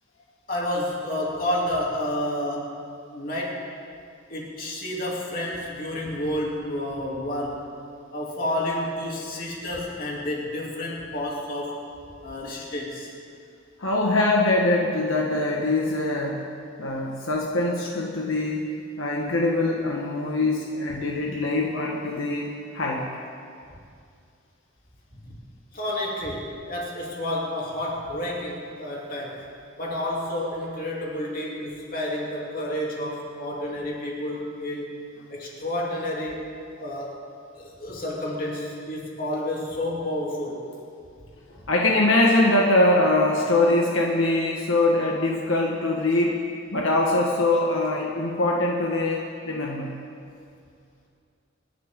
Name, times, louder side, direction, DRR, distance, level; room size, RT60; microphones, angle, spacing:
voice 1, 0.5-2.7 3.1-3.7 4.3-7.6 8.1-11.8 12.2-13.1 25.2-25.3 25.7-29.4 29.8-35.0 35.3-36.4 36.8-37.2 37.5-40.6, left 1 dB, 45° left, -4 dB, 3.0 m, -30 dB
voice 2, 13.8-16.4 16.8-23.1 41.7-46.4 46.7-49.9, left 2 dB, 80° left, -2 dB, 1.5 m, -23 dB
27.0 x 11.0 x 3.8 m, 2.4 s
head